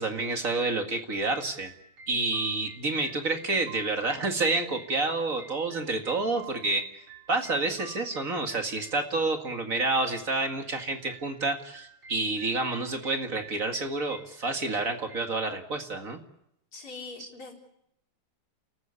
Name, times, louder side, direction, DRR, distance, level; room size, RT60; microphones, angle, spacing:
voice 1, 0.0-1.7 2.1-6.8 7.3-16.2 17.2-17.3, right 3 dB, 40° right, 5 dB, 2.3 m, -29 dB
sound 1, 1.1-15.2, right 5 dB, 70° right, 2.9 m, -51 dB
voice 2, 16.7-17.5, left 3 dB, 75° left, 0 dB, 4.9 m, -42 dB
30.0 x 14.5 x 8.3 m, 0.78 s
omnidirectional pair, 2.3 m